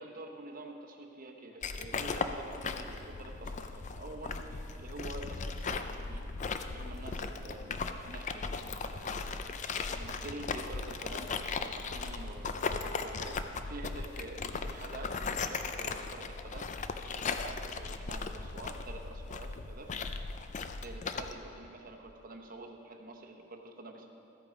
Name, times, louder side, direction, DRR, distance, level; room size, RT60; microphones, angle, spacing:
voice 1, 0.0-6.3 6.7-9.2 9.9-16.7 17.0-19.9 20.8-24.1, right 2 dB, 45° right, 3 dB, 0.9 m, -47 dB
sound 1, 1.6-21.3, left 4 dB, 35° left, 0.4 m, -37 dB
sound 2, 1.9-8.0, equal, 20° right, 1.3 m, -60 dB
13.5 x 8.2 x 5.0 m, 2.8 s
head